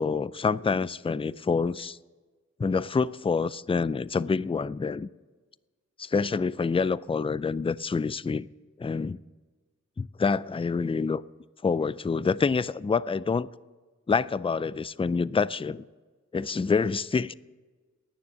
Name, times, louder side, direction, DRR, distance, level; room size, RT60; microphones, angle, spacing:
voice 1, 0.0-2.0 2.6-5.1 6.0-8.5 8.8-9.2 10.0-11.2 11.6-13.5 14.1-15.8 16.3-17.3, left 5 dB, 20° left, 0.3 m, -27 dB
18.5 x 7.0 x 7.4 m
wide cardioid pair, 45°, 31 cm